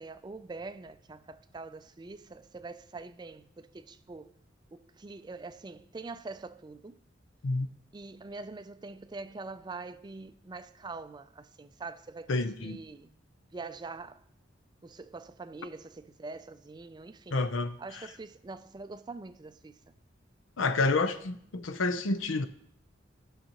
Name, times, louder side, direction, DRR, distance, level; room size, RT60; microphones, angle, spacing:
voice 1, 0.0-4.3 4.7-7.0 7.9-13.2 13.5-14.2 14.8-17.4 17.8-19.9 20.6-21.2, right 3 dB, 20° right, 0.4 m, -44 dB
voice 2, 12.3-12.8 17.3-18.1 20.6-22.4, left 3 dB, 90° left, 0.7 m, -29 dB
16.5 x 6.5 x 3.0 m
head